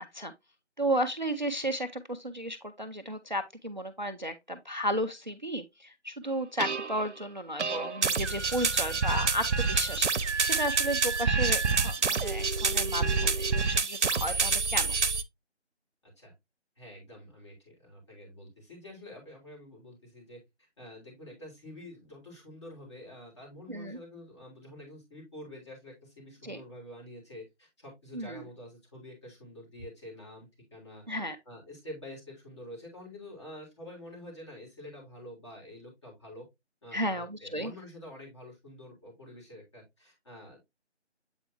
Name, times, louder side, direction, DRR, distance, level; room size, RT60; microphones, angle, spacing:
voice 1, 0.8-14.9 23.7-24.0 26.4-26.6 28.1-28.4 31.1-31.4 36.9-37.7, equal, 40° right, 0.5 m, -33 dB
sound 1, 6.6-7.0 7.6-15.2, right 4 dB, 75° right, 0.8 m, -27 dB
voice 2, 16.8-31.0 31.4-36.4 36.8-40.7, left 1 dB, 25° left, 3.2 m, -47 dB
7.9 x 4.5 x 2.9 m
figure-of-eight pair, 170°, 35 cm